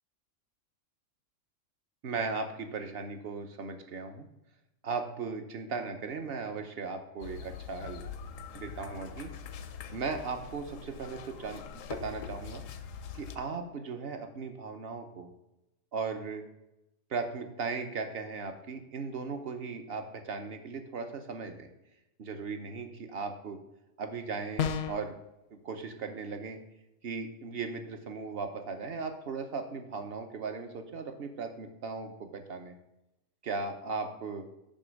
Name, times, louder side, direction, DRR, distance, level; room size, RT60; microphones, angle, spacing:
voice 1, 2.0-4.3 4.8-8.0 8.5-9.3 9.9-11.6 11.9-12.6 13.1-15.3 15.9-16.4 17.1-21.7 22.2-23.6 24.0-25.1 25.6-26.6 27.0-32.8 33.4-34.4, right 4 dB, 55° right, 6 dB, 1.0 m, -37 dB
sound 1, 7.2-13.4, left 6 dB, 85° left, 1.0 m, -43 dB
sound 2, 24.6-25.1, left 7 dB, 65° left, 0.7 m, -30 dB
8.5 x 3.0 x 6.3 m, 0.90 s
omnidirectional pair, 1.3 m